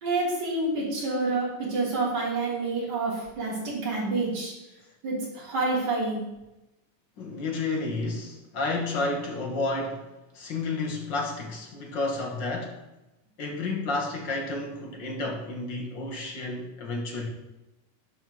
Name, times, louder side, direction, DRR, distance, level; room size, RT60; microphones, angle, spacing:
voice 1, 0.0-4.5 5.0-6.2, right 3 dB, 30° right, -5 dB, 3.6 m, -28 dB
voice 2, 7.2-12.8 13.4-17.3, left 3 dB, 55° left, 1 dB, 1.3 m, -31 dB
9.1 x 5.4 x 6.2 m, 0.95 s
omnidirectional pair, 3.7 m